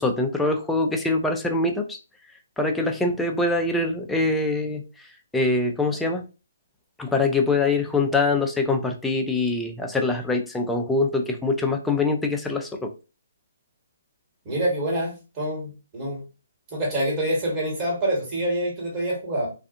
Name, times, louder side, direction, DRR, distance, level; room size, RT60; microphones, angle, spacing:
voice 1, 0.0-2.0 2.6-5.1 5.3-6.2 7.0-12.9, left 3 dB, 5° left, 2 dB, 0.4 m, -24 dB
voice 2, 14.4-16.2 16.7-19.5, right 1 dB, 25° right, -4 dB, 1.5 m, -26 dB
2.5 x 2.4 x 2.5 m, 0.31 s
hypercardioid pair, 150°, 0 cm